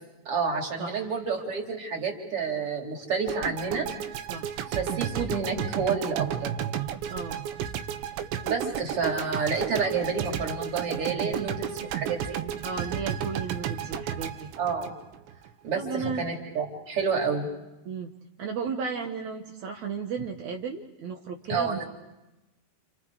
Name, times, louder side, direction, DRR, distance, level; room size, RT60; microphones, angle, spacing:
voice 1, 0.3-3.9 4.7-6.5 8.4-12.4 14.6-14.9 15.6-17.5 21.5-21.8, right 5 dB, 35° right, 1 dB, 3.6 m, -29 dB
voice 2, 0.8-1.1 4.3-4.5 7.1-7.4 12.6-14.5 15.7-16.2 17.9-18.1 18.4-21.8, right 5 dB, 65° right, 1 dB, 2.0 m, -34 dB
sound 1, 3.3-15.5, right 9 dB, 85° right, 3.3 m, -33 dB
30.0 x 28.5 x 4.9 m, 1.0 s
omnidirectional pair, 4.9 m